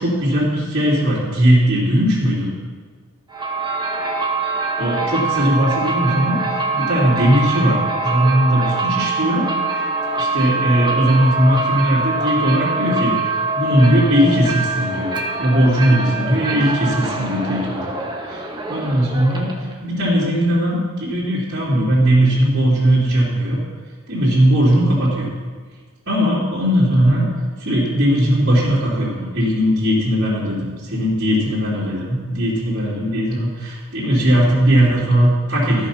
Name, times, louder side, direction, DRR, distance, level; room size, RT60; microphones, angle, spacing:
voice 1, 0.0-2.5 4.8-6.4 6.7-9.5 10.2-13.1 13.5-17.9 18.3-18.4 18.7-19.5 19.8-23.6 24.1-25.3 26.1-27.2 27.6-35.9, equal, 55° right, -10 dB, 2.9 m, -18 dB
sound 1, 3.3-19.7, right 3 dB, 20° right, 1.1 m, -24 dB
13.5 x 5.6 x 5.7 m, 1.5 s
head